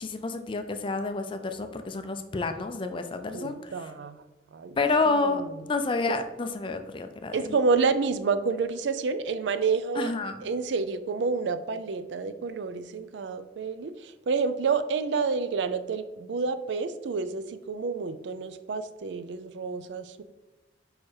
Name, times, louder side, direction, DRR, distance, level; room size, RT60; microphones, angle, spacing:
voice 1, 0.0-3.7 4.8-5.4 5.7-7.4 10.0-10.4, left 3 dB, 30° left, 8 dB, 0.4 m, -29 dB
voice 2, 3.3-4.3 4.5-4.8 5.1-5.7 6.1-6.2 7.3-10.1 10.4-20.2, right 4 dB, 75° right, 12 dB, 0.4 m, -29 dB
4.7 x 4.4 x 4.6 m, 1.1 s
head